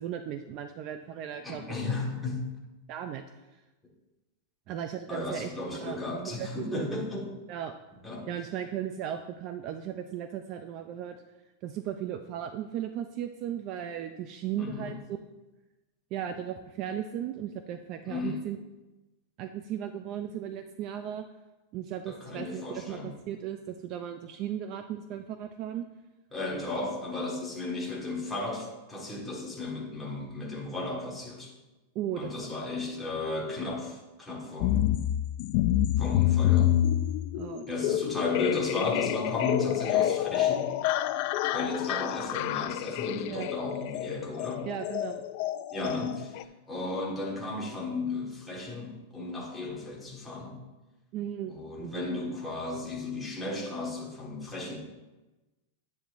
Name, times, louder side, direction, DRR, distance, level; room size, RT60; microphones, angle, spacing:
voice 1, 0.0-1.8 2.9-3.2 4.7-5.5 5.8-6.9 7.5-7.7 8.3-11.2 11.6-15.2 16.1-18.6 19.4-21.2 21.7-25.9 32.0-32.3 37.3-38.0 43.3-43.5 44.6-45.2 46.0-46.1 51.1-52.1, right 10 dB, 30° right, 8 dB, 0.4 m, -36 dB
voice 2, 1.4-2.4 5.1-7.3 8.0-8.3 14.6-15.0 18.1-18.4 22.1-23.1 26.3-31.5 32.2-34.9 36.0-36.7 37.7-40.7 41.5-44.6 45.7-50.6 51.5-54.8, left 2 dB, 5° left, -4 dB, 1.6 m, -34 dB
sound 1, 34.6-46.4, left 12 dB, 40° left, 0.3 m, -28 dB
10.0 x 9.2 x 2.6 m, 1.1 s
supercardioid pair, 175°, 0 cm